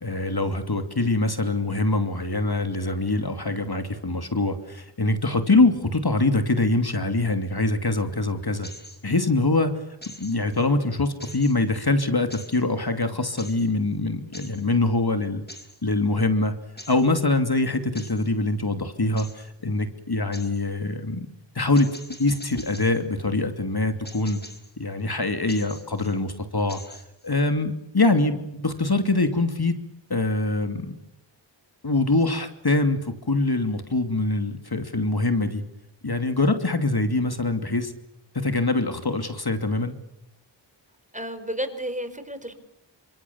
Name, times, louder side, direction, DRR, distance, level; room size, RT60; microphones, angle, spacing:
voice 1, 0.0-8.7 9.0-9.8 10.2-15.4 15.8-16.5 16.9-21.3 21.5-24.4 24.8-27.0 27.2-29.7 30.1-31.0 31.8-35.6 36.0-37.9 38.3-39.9, left 2 dB, 55° left, 8 dB, 2.8 m, -24 dB
sound 1, 8.6-9.3 10.0-10.7 11.2-11.8 12.3-12.6 13.4-13.7 14.3-14.7 15.5-15.8 16.8-17.1 18.0-18.3 19.2-19.5 20.3-20.6 21.8-23.0 24.1-24.7 25.5-26.2 26.7-27.3, left 1 dB, 20° left, 5.4 m, -44 dB
voice 2, 41.1-42.5, equal, 15° right, 9 dB, 4.8 m, -31 dB
29.5 x 26.5 x 7.2 m, 0.81 s
wide cardioid pair, 55°, 45 cm